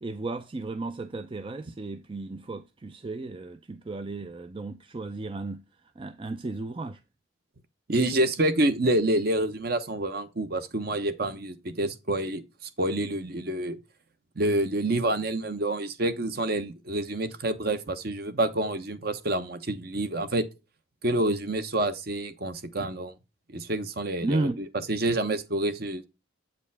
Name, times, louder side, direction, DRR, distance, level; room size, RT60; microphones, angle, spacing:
voice 1, 0.0-5.6 6.0-7.0 24.2-24.6, right 2 dB, 25° right, 0.4 m, -34 dB
voice 2, 7.9-12.4 12.8-13.8 14.4-20.5 21.0-23.1 23.5-26.1, right 1 dB, 50° right, 0.9 m, -27 dB
8.4 x 5.1 x 3.4 m
head